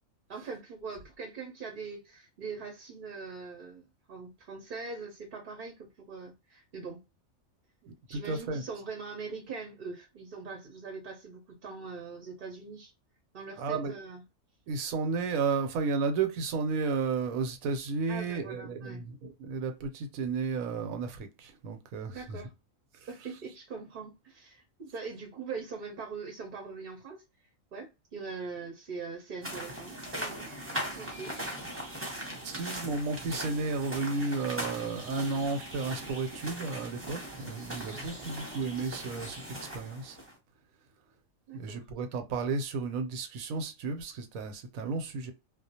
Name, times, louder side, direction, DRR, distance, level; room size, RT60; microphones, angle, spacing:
voice 1, 0.3-7.0 8.1-12.9 13.3-14.2 18.1-19.0 22.1-22.5 23.1-27.2 27.7-30.5 31.0-31.4 32.1-32.4 37.9-38.2 41.5-41.8, right 4 dB, 50° right, 0.6 m, -42 dB
voice 2, 7.8-8.6 13.6-13.9 14.7-22.4 22.9-23.1 32.3-40.2 41.5-45.3, right 4 dB, 85° right, 1.0 m, -33 dB
sound 1, 29.4-40.3, right 1 dB, 10° right, 0.7 m, -40 dB
2.4 x 2.0 x 2.7 m
omnidirectional pair, 1.4 m